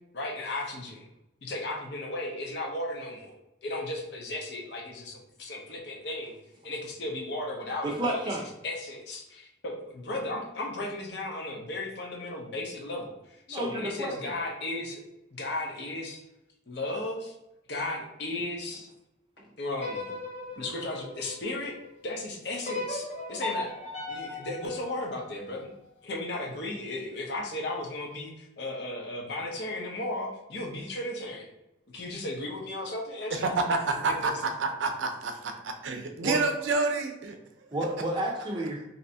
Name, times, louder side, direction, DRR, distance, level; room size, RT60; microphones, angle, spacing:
voice 1, 0.1-1.1 1.4-3.4 3.6-6.4 6.6-8.4 8.6-15.0 15.3-16.2 16.7-17.3 17.7-18.9 19.6-20.1 20.5-21.8 22.0-23.8 24.1-25.7 26.0-31.5 31.9-33.5 34.1-34.4, left 2 dB, 60° left, 0.7 m, -35 dB
voice 2, 7.8-8.4 13.5-14.3 36.2-36.4 37.7-38.8, right 1 dB, 25° right, 0.6 m, -31 dB
sound 1, 19.7-21.9 22.6-25.8, left 2 dB, 35° left, 1.0 m, -37 dB
voice 3, 33.4-37.4, right 3 dB, 80° right, 0.5 m, -28 dB
3.2 x 2.7 x 2.7 m
head